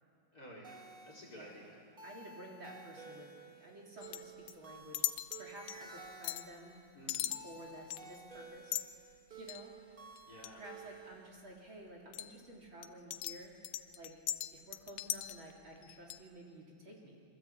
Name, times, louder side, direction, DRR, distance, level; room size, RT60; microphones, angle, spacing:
voice 1, 0.3-1.8 6.9-7.4 10.2-10.7, equal, 30° left, -1 dB, 4.9 m, -52 dB
sound 1, 0.6-11.3, right 4 dB, 25° right, 1.2 m, -54 dB
voice 2, 2.0-6.8 7.4-9.7 10.5-13.6 14.0-14.1 14.5-17.2, right 1 dB, 40° right, -1 dB, 4.1 m, -52 dB
sound 2, 4.0-4.5 4.9-5.4 5.7-5.8 6.2-6.5 7.1-7.4 7.9-8.2 8.7-8.9 9.5-9.7 10.2-10.5 12.1-12.3 12.8-15.5 15.8-16.2, left 12 dB, 70° left, 1.4 m, -39 dB
27.5 x 24.0 x 8.5 m, 2.4 s
omnidirectional pair, 3.4 m